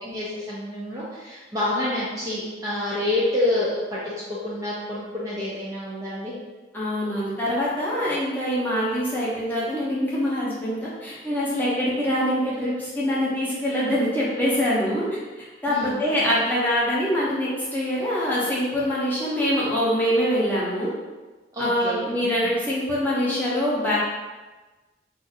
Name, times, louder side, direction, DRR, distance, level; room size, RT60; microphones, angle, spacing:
voice 1, 0.0-4.0 4.3-6.3 15.7-16.1 21.5-22.0 22.4-22.5, left 1 dB, 20° right, -8 dB, 0.5 m, -28 dB
voice 2, 6.7-20.9 21.6-24.0, equal, 10° left, -8 dB, 0.8 m, -24 dB
2.6 x 2.4 x 4.0 m, 1.2 s
head